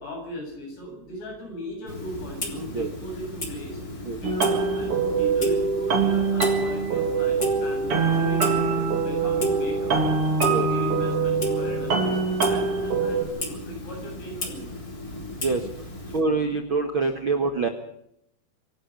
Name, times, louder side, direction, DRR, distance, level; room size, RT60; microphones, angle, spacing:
voice 1, 0.0-3.8 4.2-9.9 10.5-14.7, equal, 75° left, 2 dB, 10.0 m, -38 dB
Clock, 1.9-16.2, left 2 dB, 20° left, 3.5 m, -36 dB
sound 1, 4.2-13.2, right 4 dB, 35° right, 3.2 m, -23 dB
voice 2, 16.1-17.7, right 3 dB, 75° right, 6 dB, 1.1 m, -25 dB
25.5 x 11.5 x 8.8 m, 0.75 s
omnidirectional pair, 4.9 m